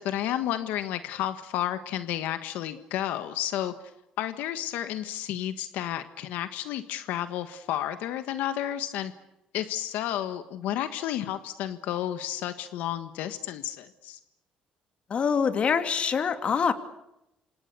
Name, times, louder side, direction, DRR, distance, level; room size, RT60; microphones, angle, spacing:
voice 1, 0.0-3.7 4.2-9.1 9.5-14.2, left 12 dB, 90° left, 10 dB, 1.5 m, -31 dB
voice 2, 15.1-16.7, left 6 dB, 45° left, 8 dB, 2.8 m, -25 dB
27.5 x 26.5 x 7.0 m, 0.86 s
cardioid pair, 110°, 3 cm